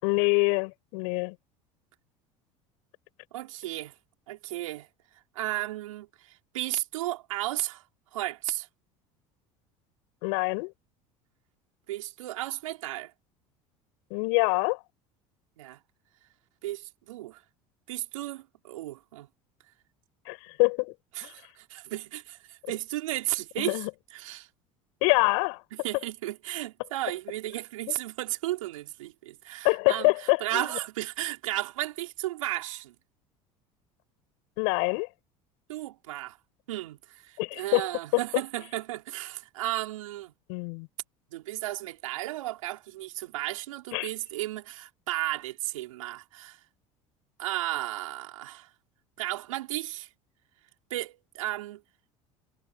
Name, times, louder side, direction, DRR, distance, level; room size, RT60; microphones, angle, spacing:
voice 1, 0.0-1.4 10.2-10.7 14.1-14.8 20.3-20.9 21.2-21.3 23.6-23.9 25.0-25.6 27.9-28.0 29.6-30.8 34.6-35.1 37.4-37.9 40.5-40.9 43.9-44.1, left 35 dB, 70° left, 5.5 m, -25 dB
voice 2, 3.3-3.9 4.3-4.9 5.3-6.1 6.5-7.8 8.1-8.7 11.9-13.1 15.6-15.8 16.6-17.4 17.9-19.3 21.2-23.8 24.1-24.5 25.8-30.1 30.4-32.9 35.7-36.4 36.7-40.3 41.3-46.6 47.4-48.7 49.2-50.1 50.9-51.8, right 16 dB, 80° right, 5.0 m, -34 dB
hypercardioid pair, 75°, 17 cm